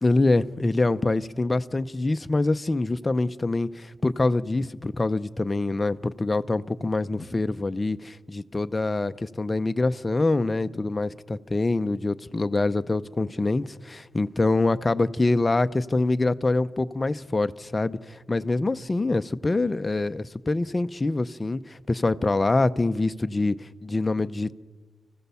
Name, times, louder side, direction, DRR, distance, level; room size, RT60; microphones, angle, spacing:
voice 1, 0.0-24.5, left 2 dB, 20° left, 11 dB, 0.6 m, -25 dB
29.0 x 15.5 x 7.0 m, 1.4 s
wide cardioid pair, 145°, 0 cm